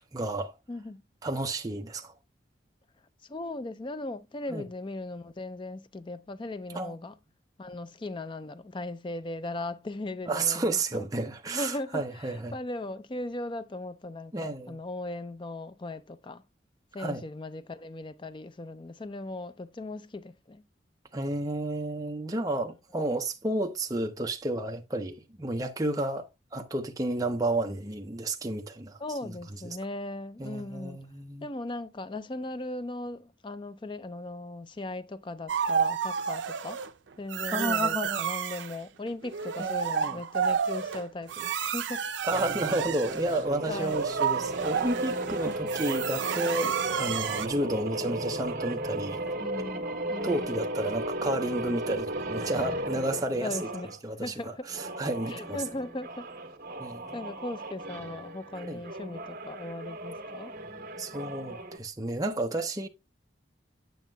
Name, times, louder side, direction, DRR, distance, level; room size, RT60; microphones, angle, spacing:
voice 1, 0.1-0.5 1.2-2.1 4.5-4.6 6.7-6.9 10.3-12.5 14.3-14.8 17.0-17.2 21.1-29.3 30.4-31.5 37.5-38.3 39.6-40.2 42.2-49.2 50.2-53.6 54.0-55.6 56.8-57.1 58.7-58.8 61.0-62.9, right 1 dB, 20° right, 0.6 m, -31 dB
voice 2, 0.7-1.0 3.2-7.1 7.6-11.1 11.5-16.4 16.9-20.6 29.0-31.0 31.4-36.8 37.2-42.0 43.7-44.0 45.4-45.5 49.4-50.6 53.4-53.9 54.2-54.7 55.3-56.3 57.1-60.5, left 2 dB, 25° left, 0.4 m, -38 dB
sound 1, 35.5-36.9 37.3-38.8 39.2-47.5, right 7 dB, 80° right, 0.5 m, -31 dB
sound 2, 42.3-54.0 54.6-61.8, right 1 dB, 45° right, 1.4 m, -35 dB
9.1 x 6.2 x 2.2 m
head